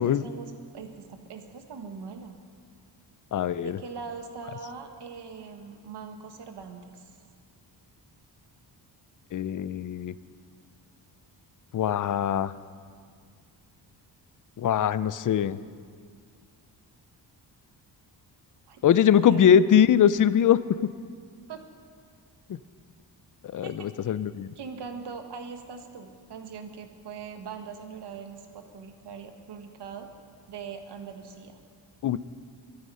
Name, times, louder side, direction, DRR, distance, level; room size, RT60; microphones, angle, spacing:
voice 1, 0.0-2.4 3.6-7.1 18.7-19.6 21.5-21.6 23.5-23.9 24.5-30.1 30.5-31.6, right 5 dB, 70° right, 6 dB, 1.6 m, -41 dB
voice 2, 3.3-3.8 9.3-10.1 11.7-12.5 14.6-15.6 18.8-20.6 22.5-22.6 23.5-24.5 32.0-32.2, left 9 dB, 45° left, 16 dB, 0.6 m, -22 dB
23.0 x 9.9 x 5.6 m, 2.1 s
cardioid pair, 105°, 43 cm